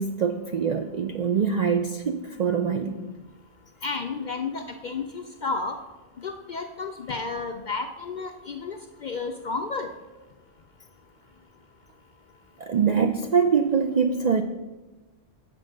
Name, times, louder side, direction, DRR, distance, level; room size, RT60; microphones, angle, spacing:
voice 1, 0.0-3.1 12.6-14.4, right 6 dB, 65° right, 6 dB, 0.4 m, -24 dB
voice 2, 3.8-5.8 6.2-9.9, left 4 dB, 60° left, 6 dB, 0.5 m, -32 dB
7.7 x 5.1 x 6.4 m, 1.2 s
omnidirectional pair, 1.2 m